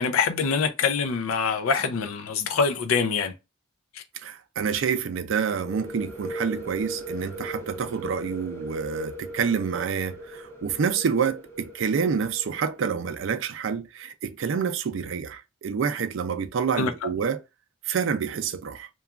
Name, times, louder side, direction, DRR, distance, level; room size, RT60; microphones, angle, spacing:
voice 1, 0.0-3.3 16.7-16.9, left 5 dB, 90° left, 0.4 m, -24 dB
voice 2, 4.2-17.4 17.9-18.9, right 6 dB, 65° right, 0.4 m, -28 dB
sound 1, 5.5-13.1, right 1 dB, 10° left, 0.6 m, -39 dB
2.9 x 2.3 x 2.3 m
head